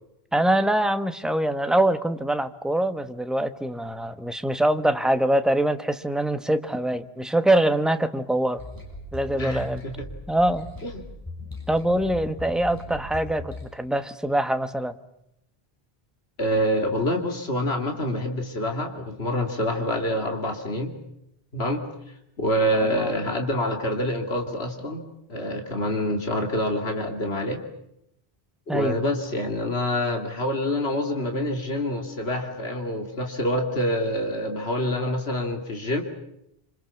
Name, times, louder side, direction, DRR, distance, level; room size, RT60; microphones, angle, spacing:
voice 1, 0.3-8.6 9.1-9.8 10.3-10.7 11.7-15.0 22.7-23.1 28.7-29.0, right 1 dB, ahead, 9 dB, 1.1 m, -24 dB
sound 1, 8.6-13.7, left 2 dB, 20° left, 6.9 m, -39 dB
voice 2, 9.3-10.1 10.8-10.9 16.4-20.9 21.5-21.8 22.4-25.0 25.3-27.6 28.7-36.0, equal, 75° left, 4 dB, 3.0 m, -26 dB
27.0 x 26.0 x 7.1 m, 0.81 s
omnidirectional pair, 1.1 m